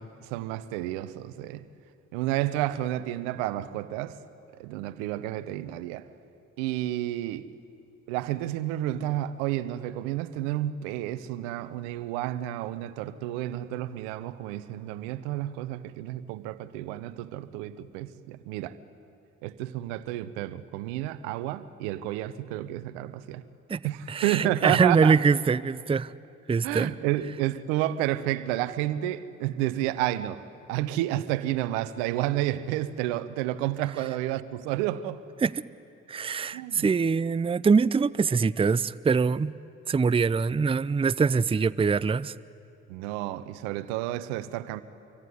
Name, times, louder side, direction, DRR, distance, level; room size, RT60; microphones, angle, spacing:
voice 1, 0.0-1.6 2.1-4.2 4.6-6.1 6.6-7.5 8.1-18.7 19.4-23.4 23.8-25.2 26.6-30.4 30.7-35.2 36.5-36.9 42.9-44.8, right 14 dB, 80° right, 0.9 m, -30 dB
voice 2, 24.1-26.1 26.5-26.9 35.4-35.5 36.1-39.5 39.9-42.3, right 5 dB, 15° right, 0.6 m, -23 dB
25.5 x 24.0 x 9.7 m
hypercardioid pair, 45°, 35 cm